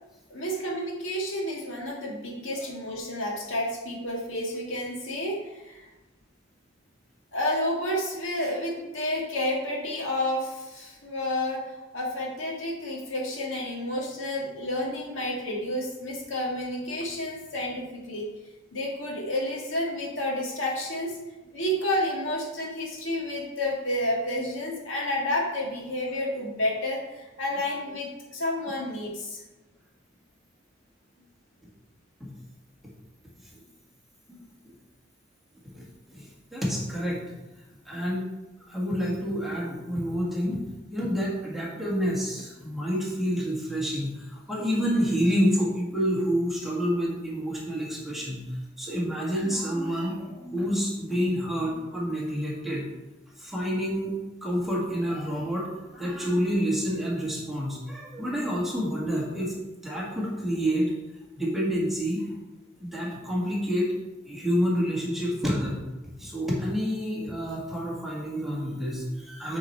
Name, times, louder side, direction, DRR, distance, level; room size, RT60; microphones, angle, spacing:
voice 1, 0.3-5.9 7.3-18.3 18.7-21.2 21.5-29.4, left 1 dB, 65° left, -2 dB, 2.1 m, -30 dB
voice 2, 36.1-37.2 37.8-38.2 38.6-40.6 40.9-48.5 48.8-52.8 53.4-54.2 54.4-59.5 59.8-61.0 61.4-62.3 62.8-63.9 64.2-65.8 66.2-69.6, equal, ahead, -5 dB, 1.6 m, -28 dB
8.2 x 4.5 x 4.5 m, 1.1 s
head